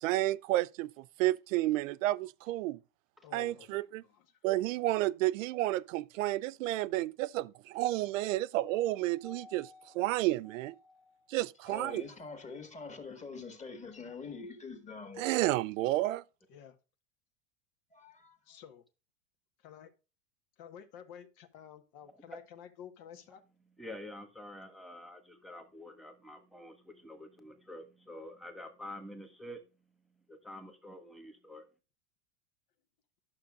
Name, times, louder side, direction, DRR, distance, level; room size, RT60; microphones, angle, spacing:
voice 1, 0.0-2.8 3.3-4.0 4.4-9.7 9.9-10.7 11.3-12.0 15.2-16.2, right 17 dB, 80° right, 0.5 m, -31 dB
voice 2, 3.2-4.4 16.5-16.8 18.5-18.8 19.6-19.9 20.6-23.4, left 8 dB, 55° left, 1.4 m, -51 dB
voice 3, 8.7-10.0 10.5-11.3 22.1-22.4 23.8-29.6 30.3-31.6, left 1 dB, ahead, 1.4 m, -48 dB
voice 4, 11.7-15.3 17.9-18.4, left 4 dB, 20° left, 1.8 m, -45 dB
11.5 x 6.5 x 2.4 m
supercardioid pair, 120°, 39 cm